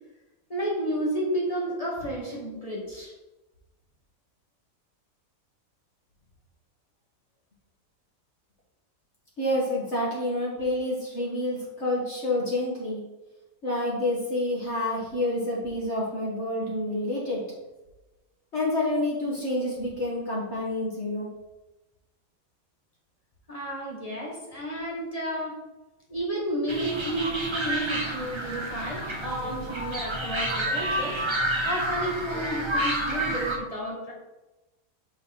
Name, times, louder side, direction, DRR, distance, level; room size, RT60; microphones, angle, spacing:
voice 1, 0.5-3.1 23.5-25.6 26.1-31.2 31.6-34.1, right 1 dB, 25° left, -3 dB, 1.5 m, -31 dB
voice 2, 9.4-13.0 13.6-17.4 18.5-21.3, left 1 dB, 45° left, -5 dB, 1.8 m, -28 dB
sound 1, 26.7-33.6, right 1 dB, 20° right, 0.8 m, -29 dB
6.0 x 4.1 x 5.7 m, 1.1 s
omnidirectional pair, 1.7 m